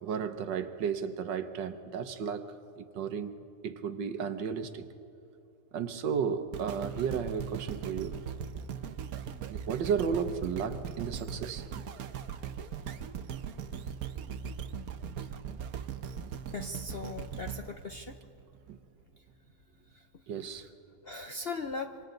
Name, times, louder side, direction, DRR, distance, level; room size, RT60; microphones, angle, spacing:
voice 1, 0.0-2.5 2.8-3.3 3.6-4.9 5.7-8.2 9.5-11.8 18.7-18.8 20.3-20.7, right 7 dB, 85° right, 10 dB, 1.6 m, -33 dB
sound 1, 6.5-18.7 19.3-19.4, right 7 dB, 60° right, 1.2 m, -40 dB
voice 2, 16.5-18.2 19.9-20.1 20.4-20.6 21.0-22.0, left 3 dB, 55° left, 6 dB, 0.6 m, -39 dB
27.0 x 26.0 x 3.9 m, 2.7 s
omnidirectional pair, 1.9 m